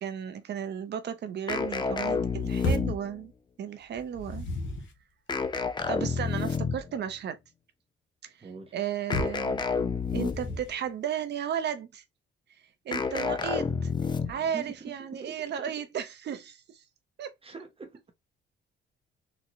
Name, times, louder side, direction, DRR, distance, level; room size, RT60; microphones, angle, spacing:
voice 1, 0.0-3.3 3.6-4.5 5.9-7.4 8.2-8.5 8.7-9.6 10.1-12.0 12.8-13.9 14.3-16.8 17.2-17.3, right 8 dB, 60° right, 0.8 m, -34 dB
sound 1, 1.5-3.3 5.3-7.0 9.1-10.6 12.9-14.5, left 5 dB, 25° left, 0.4 m, -30 dB
sound 2, 2.6-3.0 3.9-5.0 9.1-9.5 10.1-10.8, left 2 dB, 75° left, 0.9 m, -32 dB
voice 2, 8.4-8.8 14.5-15.8 17.4-18.1, right 4 dB, 30° right, 0.7 m, -44 dB
3.9 x 2.2 x 3.0 m
cardioid pair, 90°, 20 cm